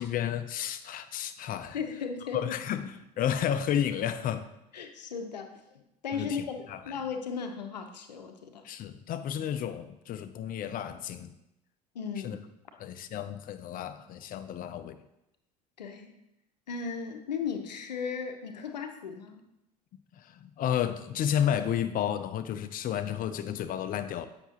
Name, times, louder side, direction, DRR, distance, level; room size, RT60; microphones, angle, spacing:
voice 1, 0.0-1.8 2.3-4.5 6.1-6.8 8.6-11.4 12.2-12.4 12.8-15.0 20.2-24.3, left 9 dB, 45° left, 11 dB, 0.6 m, -32 dB
voice 2, 1.7-2.6 4.7-8.7 11.9-12.4 15.8-16.1 16.7-19.5, left 6 dB, 90° left, 6 dB, 0.7 m, -36 dB
7.9 x 5.9 x 2.9 m, 0.87 s
hypercardioid pair, 75°, 21 cm